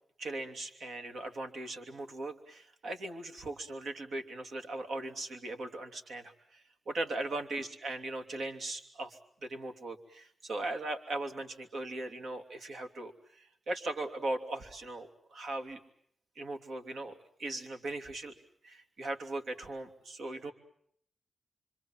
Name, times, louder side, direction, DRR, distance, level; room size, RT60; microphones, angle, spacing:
voice 1, 0.2-15.8 16.4-18.3 18.6-20.5, right 2 dB, 75° right, 5 dB, 3.0 m, -39 dB
27.0 x 25.0 x 7.5 m, 0.67 s
cardioid pair, 95°, 0 cm